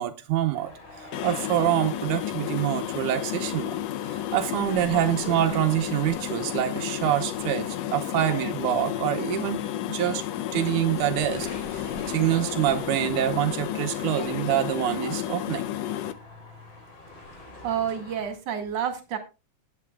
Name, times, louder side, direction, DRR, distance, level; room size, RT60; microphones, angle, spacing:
voice 1, 0.0-3.8 4.1-10.2 10.5-15.6, right 12 dB, 85° right, 2.4 m, -26 dB
sound 1, 0.5-18.3, left 2 dB, 40° left, 4.3 m, -47 dB
sound 2, 1.1-16.1, left 12 dB, 75° left, 1.6 m, -32 dB
voice 2, 17.6-19.2, right 8 dB, 60° right, 3.1 m, -29 dB
19.5 x 8.0 x 2.3 m
omnidirectional pair, 3.4 m